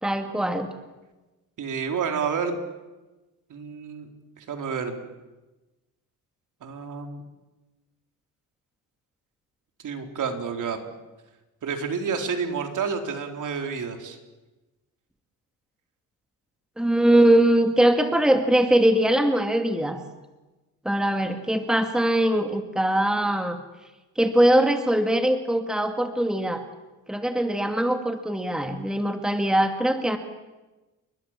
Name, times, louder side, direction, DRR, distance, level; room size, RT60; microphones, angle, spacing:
voice 1, 0.0-0.7 16.8-20.0 20.9-23.6 24.2-26.6 27.1-30.2, right 1 dB, ahead, 6 dB, 2.1 m, -21 dB
voice 2, 1.6-2.6 3.5-4.1 4.4-5.0 6.6-7.2 9.8-10.8 11.6-14.2, right 6 dB, 55° right, 5 dB, 4.1 m, -29 dB
30.0 x 22.5 x 7.6 m, 1.1 s
cardioid pair, 110°, 37 cm